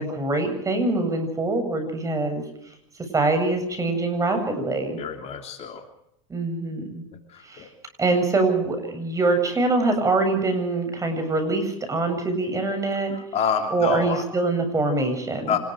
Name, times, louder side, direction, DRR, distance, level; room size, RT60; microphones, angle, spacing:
voice 1, 0.0-2.4 3.1-5.0 6.3-7.0 7.4-7.7 8.0-13.1 13.7-15.6, right 2 dB, 20° right, 6 dB, 8.0 m, -24 dB
voice 2, 5.0-5.9 7.3-7.7 13.1-14.2 15.5-15.6, left 7 dB, 40° left, 5 dB, 3.2 m, -27 dB
27.0 x 21.0 x 5.0 m, 0.75 s
hypercardioid pair, 95°, 17 cm